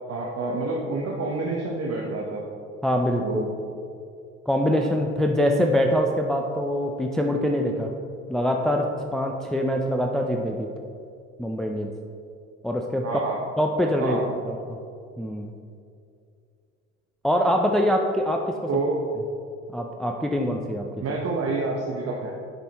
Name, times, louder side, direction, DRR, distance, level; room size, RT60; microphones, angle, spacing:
voice 1, 0.1-2.5 3.2-3.5 13.0-13.4 14.0-14.2 18.7-19.0 21.0-22.3, right 3 dB, 40° right, -2 dB, 1.1 m, -28 dB
voice 2, 2.8-3.2 4.5-7.9 8.3-10.7 11.4-11.9 12.6-13.1 13.6-14.8 15.2-15.5 17.2-18.7 19.7-21.2, equal, ahead, 2 dB, 0.5 m, -24 dB
10.5 x 5.5 x 3.0 m, 2.4 s
hypercardioid pair, 70°, 37 cm